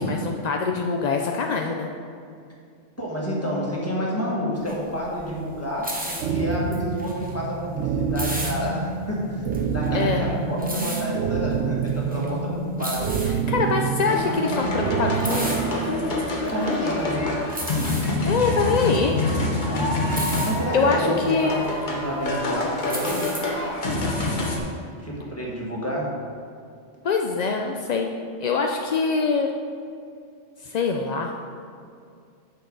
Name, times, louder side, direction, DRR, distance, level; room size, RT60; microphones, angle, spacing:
voice 1, 0.0-1.9 9.9-10.2 13.3-15.6 18.3-19.2 20.7-21.6 27.0-28.1 28.4-29.5 30.6-31.3, left 4 dB, 60° left, 2 dB, 0.4 m, -24 dB
voice 2, 3.0-13.1 14.4-14.6 16.5-17.2 20.4-23.3 25.0-26.1, equal, 10° left, -5 dB, 1.7 m, -29 dB
sound 1, 4.6-24.5, right 1 dB, 10° right, 0.8 m, -36 dB
sound 2, 6.2-16.2, right 5 dB, 70° right, 1.1 m, -27 dB
sound 3, 14.1-24.6, left 2 dB, 45° left, 1.1 m, -26 dB
9.3 x 6.6 x 3.9 m, 2.4 s
omnidirectional pair, 1.2 m